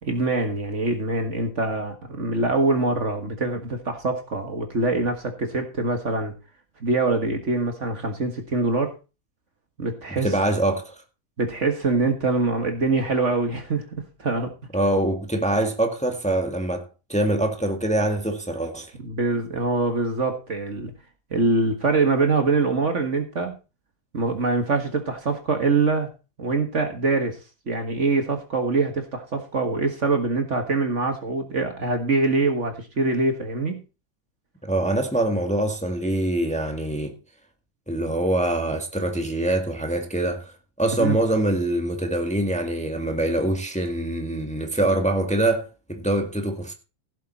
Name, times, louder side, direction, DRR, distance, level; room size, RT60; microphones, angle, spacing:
voice 1, 0.0-6.3 6.8-8.9 9.8-10.3 11.4-14.5 19.0-20.9 21.3-23.5 24.1-26.1 26.4-27.4 27.7-33.8 41.0-41.2, right 3 dB, 50° right, 1.9 m, -24 dB
voice 2, 10.1-10.9 14.7-18.9 34.6-37.1 37.9-46.7, right 1 dB, 5° left, 1.7 m, -24 dB
16.0 x 7.5 x 4.2 m
omnidirectional pair, 1.7 m